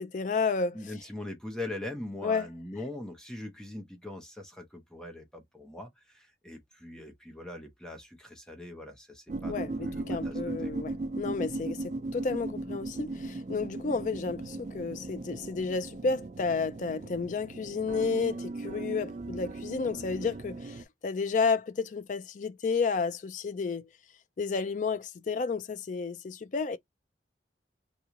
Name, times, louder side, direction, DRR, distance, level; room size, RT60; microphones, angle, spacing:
voice 1, 0.0-0.8 2.2-2.5 9.5-23.9 24.4-26.8, left 4 dB, 45° left, 0.3 m, -31 dB
voice 2, 0.7-10.7, left 1 dB, 5° left, 0.7 m, -42 dB
sound 1, 9.3-20.8, right 2 dB, 40° right, 0.3 m, -38 dB
3.0 x 2.2 x 3.7 m
head